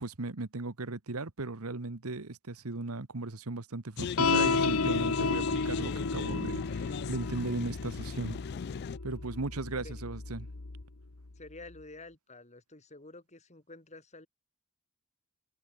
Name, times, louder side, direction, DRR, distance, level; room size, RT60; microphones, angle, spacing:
voice 1, 0.0-8.4 9.0-10.5, right 2 dB, 90° right, 1.4 m, -37 dB
sound 1, 4.0-9.0, left 6 dB, 50° left, 0.3 m, -38 dB
sound 2, 4.2-10.8, left 4 dB, 75° left, 1.2 m, -32 dB
voice 2, 11.4-14.3, left 2 dB, 30° left, 3.9 m, -49 dB
head